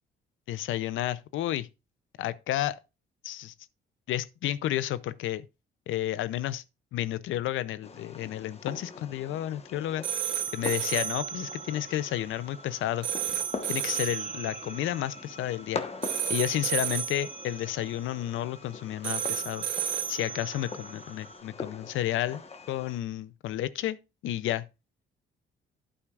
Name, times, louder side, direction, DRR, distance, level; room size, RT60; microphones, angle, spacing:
voice 1, 0.5-1.7 2.2-2.8 3.2-3.5 4.1-5.5 5.9-6.6 6.9-10.0 10.5-13.1 13.7-15.8 16.3-19.7 20.1-22.4 22.7-24.6, left 13 dB, 80° left, 0.6 m, -31 dB
Fireworks, 7.8-23.0, left 4 dB, 30° left, 1.3 m, -43 dB
sound 1, 10.0-21.4, right 9 dB, 70° right, 2.5 m, -34 dB
11.5 x 8.8 x 2.5 m
cardioid pair, 90°, 20 cm